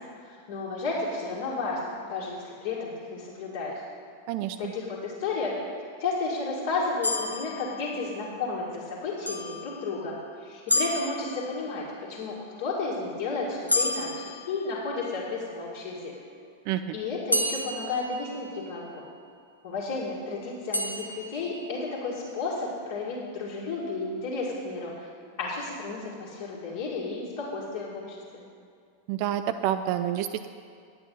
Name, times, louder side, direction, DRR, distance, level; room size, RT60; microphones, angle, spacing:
voice 1, 0.2-3.8 4.6-5.5 6.0-10.1 10.4-16.1 16.9-19.1 19.6-25.1 25.4-28.4, left 3 dB, 50° left, -7 dB, 2.1 m, -32 dB
voice 2, 4.3-4.7 16.7-17.0 29.1-30.5, right 11 dB, 45° right, 10 dB, 0.4 m, -28 dB
sound 1, 7.0-8.4 9.3-10.2 10.7-11.9 13.7-15.2 17.3-18.9 20.7-21.9, left 1 dB, 85° left, 0.7 m, -31 dB
9.6 x 8.4 x 5.5 m, 2.3 s
figure-of-eight pair, 90°, 0 cm